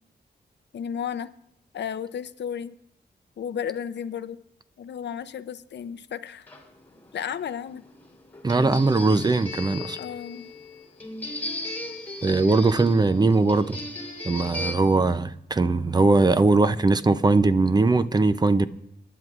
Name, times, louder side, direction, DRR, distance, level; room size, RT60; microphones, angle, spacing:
voice 1, 0.7-1.3 1.7-2.7 3.4-4.4 4.8-6.5 7.1-7.8 10.0-10.5, left 8 dB, 80° left, 0.6 m, -33 dB
sound 1, 6.5-14.7, left 1 dB, 10° left, 2.7 m, -37 dB
voice 2, 8.4-10.0 12.2-13.8 14.2-18.7, right 3 dB, 25° right, 0.5 m, -20 dB
27.0 x 11.0 x 2.4 m
wide cardioid pair, 140°, 18 cm